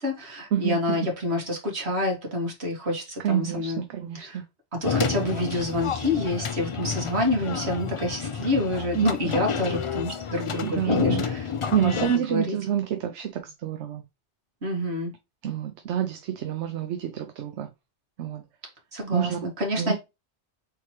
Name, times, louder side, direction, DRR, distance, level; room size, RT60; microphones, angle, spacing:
voice 1, 0.0-3.8 4.1-4.4 4.8-11.5 11.8-11.9 12.3-12.6 14.6-15.1 18.9-20.0, left 1 dB, 70° right, 1.9 m, -27 dB
voice 2, 0.5-1.1 3.2-4.4 8.9-9.1 10.6-11.2 11.7-14.0 15.4-17.7 18.2-18.4 19.1-19.5 19.8-19.9, right 10 dB, 85° right, 0.9 m, -28 dB
sound 1, 4.8-12.2, left 6 dB, 50° left, 0.4 m, -30 dB
4.2 x 3.8 x 3.0 m
omnidirectional pair, 1.1 m